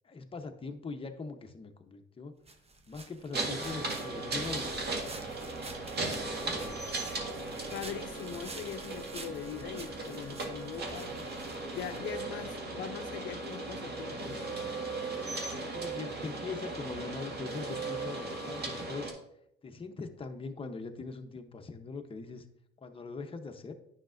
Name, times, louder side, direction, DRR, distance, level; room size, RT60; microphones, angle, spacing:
voice 1, 0.0-2.3 2.9-5.3 6.0-6.9 15.7-19.2 19.6-22.5 22.8-23.7, left 4 dB, 25° left, 5 dB, 0.8 m, -42 dB
sound 1, 2.5-12.5, right 3 dB, 30° right, 0.9 m, -49 dB
sound 2, 3.3-19.1, right 3 dB, 55° right, 1.8 m, -37 dB
voice 2, 7.7-11.3 11.7-14.6, left 9 dB, 70° left, 8 dB, 0.5 m, -41 dB
9.8 x 5.8 x 2.5 m, 0.77 s
cardioid pair, 90°, 20 cm